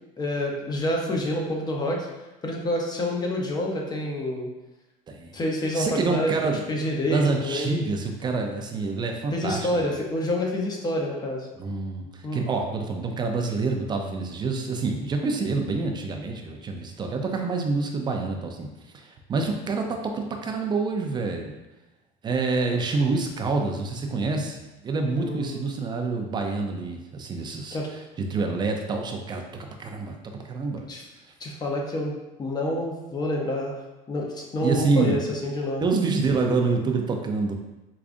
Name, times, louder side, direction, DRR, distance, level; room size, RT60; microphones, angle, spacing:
voice 1, 0.2-2.1 2.4-4.5 5.3-7.8 9.3-11.5 12.2-12.5 25.2-25.6 27.7-27.9 30.9-31.0 31.4-33.8 34.1-35.9, left 1 dB, 25° left, -1 dB, 0.7 m, -28 dB
voice 2, 5.1-5.4 5.7-6.6 7.0-10.0 11.6-18.7 18.9-21.5 22.2-28.0 28.3-29.4 29.8-30.8 34.6-35.2 35.8-37.5, right 3 dB, 25° right, 3 dB, 0.4 m, -27 dB
4.8 x 2.4 x 2.5 m, 1.0 s
cardioid pair, 130°, 18 cm